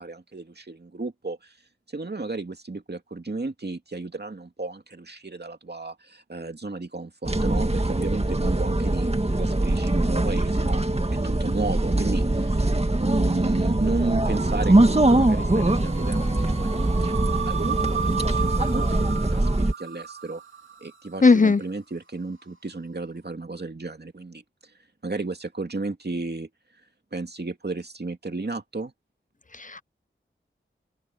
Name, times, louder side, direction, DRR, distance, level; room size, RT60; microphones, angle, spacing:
voice 1, 0.0-1.6 1.9-10.8 11.1-20.4 20.8-24.7 25.0-26.5 27.1-28.9, right 3 dB, 55° right, 2.5 m, -33 dB
sound 1, 7.2-19.7, right 2 dB, 30° right, 2.0 m, -22 dB
sound 2, 14.2-21.2, right 6 dB, 75° right, 3.0 m, -34 dB
voice 2, 21.2-21.6 29.6-29.8, left 4 dB, 40° left, 0.7 m, -17 dB
open air
cardioid pair, 40°, 21 cm